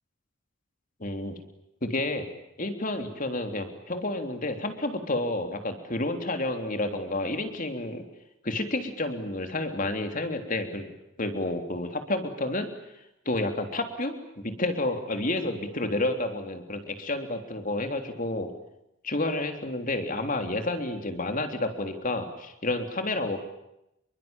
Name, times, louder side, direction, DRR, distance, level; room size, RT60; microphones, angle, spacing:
voice 1, 1.0-1.4 1.8-2.3 2.6-8.1 8.4-10.9 11.2-12.7 13.2-18.5 19.0-23.4, left 2 dB, 40° left, 6 dB, 3.4 m, -30 dB
28.0 x 23.0 x 9.0 m, 0.86 s
head